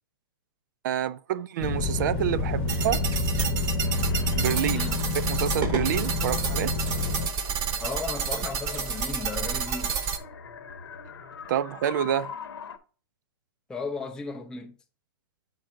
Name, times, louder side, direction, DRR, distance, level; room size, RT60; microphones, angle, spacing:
voice 1, 0.8-3.1 4.4-4.9 5.1-6.7 11.5-12.3, right 10 dB, 50° right, 0.4 m, -28 dB
sound 1, 1.6-7.3, left 3 dB, 30° left, 0.9 m, -28 dB
sound 2, 2.7-10.2, right 6 dB, 25° right, 0.8 m, -30 dB
sound 3, 3.8-12.8, left 6 dB, 85° left, 1.0 m, -43 dB
voice 2, 4.7-5.0 7.8-10.0 13.7-14.8, left 3 dB, 5° left, 0.5 m, -35 dB
7.6 x 3.9 x 4.5 m
hypercardioid pair, 150°, 13 cm